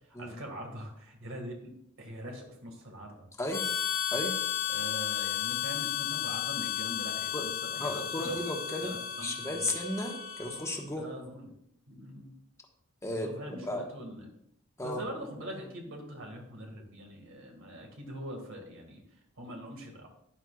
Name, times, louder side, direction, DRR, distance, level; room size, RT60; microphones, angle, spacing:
voice 1, 0.1-1.7 2.0-3.3 4.7-8.4 8.8-9.7 10.9-11.5 11.9-12.3 13.1-14.3 14.8-19.0 19.4-20.1, equal, 65° right, 1 dB, 2.1 m, -43 dB
Harmonica, 3.5-10.8, left 10 dB, 75° left, 2.2 m, -34 dB
voice 2, 7.3-8.9 9.2-11.1 13.0-13.3 13.7-13.8 14.8-15.0, left 1 dB, 15° left, 1 dB, 1.3 m, -34 dB
12.5 x 10.0 x 2.5 m, 0.74 s
head